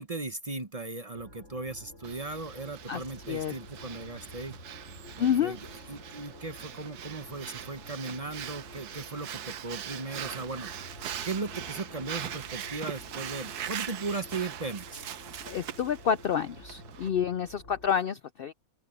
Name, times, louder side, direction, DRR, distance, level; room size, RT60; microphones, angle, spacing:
voice 1, 0.0-4.6 5.2-5.6 5.9-15.0, right 3 dB, 30° right, 0.7 m, -37 dB
sound 1, 1.1-17.9, left 1 dB, 50° left, 6.3 m, -50 dB
Breathing, 2.0-17.1, right 10 dB, 85° right, 1.4 m, -41 dB
voice 2, 5.2-5.6 15.4-18.5, left 8 dB, 85° left, 0.5 m, -28 dB
open air
omnidirectional pair, 1.6 m